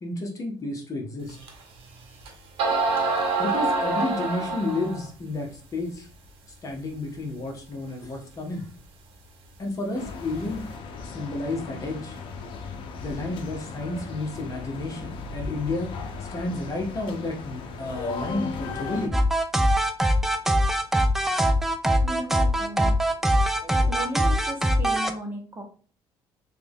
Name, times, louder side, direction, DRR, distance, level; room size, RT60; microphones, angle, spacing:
voice 1, 0.0-1.4 3.4-6.1 6.6-8.7 9.6-10.6 11.0-12.2 13.0-15.9 16.3-19.1 23.6-23.9, left 2 dB, 35° left, 2 dB, 0.9 m, -31 dB
sound 1, 1.5-1.6 2.2-2.3 2.6-5.0, right 3 dB, 75° right, 0.9 m, -25 dB
sound 2, 9.9-19.1, left 4 dB, 65° left, 0.6 m, -36 dB
sound 3, 19.1-25.1, equal, 5° right, 0.3 m, -22 dB
voice 2, 22.0-23.0 23.9-25.6, right 1 dB, 25° right, 2 dB, 0.9 m, -35 dB
3.2 x 2.3 x 3.5 m, 0.40 s
cardioid pair, 110°, 10 cm